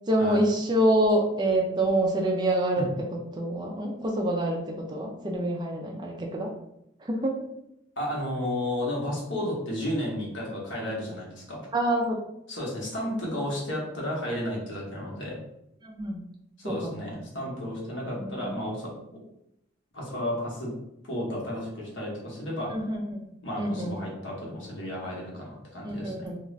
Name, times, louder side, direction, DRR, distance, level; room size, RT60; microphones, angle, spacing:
voice 1, 0.1-6.5 7.0-7.4 11.7-12.2 13.5-13.6 15.8-16.2 16.6-17.0 18.2-18.6 22.7-23.2 23.5-23.9 25.8-26.4, right 1 dB, 25° right, 1 dB, 0.4 m, -26 dB
voice 2, 8.0-11.6 12.5-15.4 16.6-18.9 19.9-20.7 21.0-22.8 23.4-26.3, left 1 dB, 80° left, -3 dB, 1.0 m, -32 dB
2.4 x 2.4 x 3.1 m, 0.82 s
head